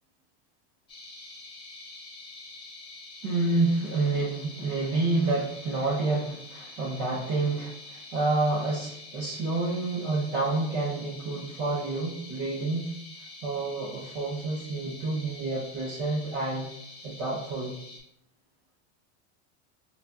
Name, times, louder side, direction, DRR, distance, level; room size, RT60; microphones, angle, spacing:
sound 1, 0.9-18.0, left 3 dB, 15° left, 0.5 m, -46 dB
voice 1, 3.2-12.9 13.4-16.7 17.0-17.7, right 3 dB, 40° right, -4 dB, 0.6 m, -28 dB
5.2 x 2.3 x 2.2 m, 0.76 s
supercardioid pair, 170°, 35 cm